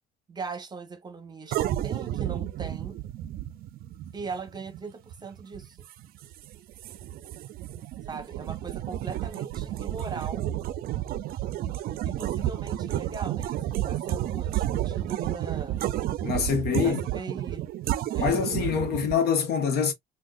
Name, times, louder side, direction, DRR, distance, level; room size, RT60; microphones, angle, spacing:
voice 1, 0.3-3.0 4.1-5.8 8.1-10.5 12.0-13.6 13.8-15.8 16.8-17.6 18.1-18.4, right 4 dB, 25° right, 0.8 m, -39 dB
sound 1, 1.5-19.2, right 13 dB, 60° right, 0.4 m, -31 dB
voice 2, 16.2-17.0 18.2-19.9, left 6 dB, 70° left, 1.0 m, -25 dB
3.5 x 2.3 x 2.3 m
cardioid pair, 110°, 17 cm